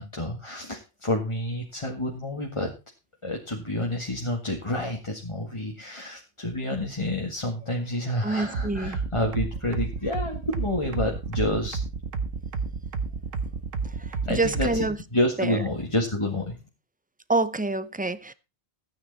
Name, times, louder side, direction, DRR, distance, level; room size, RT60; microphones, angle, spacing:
voice 1, 0.0-2.7 3.2-11.8 14.1-14.8 15.1-16.6, left 1 dB, 25° left, 1.8 m, -29 dB
voice 2, 8.2-9.0 13.8-15.0 15.4-15.6 17.3-18.3, right 2 dB, 10° right, 0.4 m, -27 dB
sound 1, 8.5-14.9, right 4 dB, 85° right, 1.6 m, -30 dB
14.5 x 9.5 x 4.1 m
omnidirectional pair, 1.3 m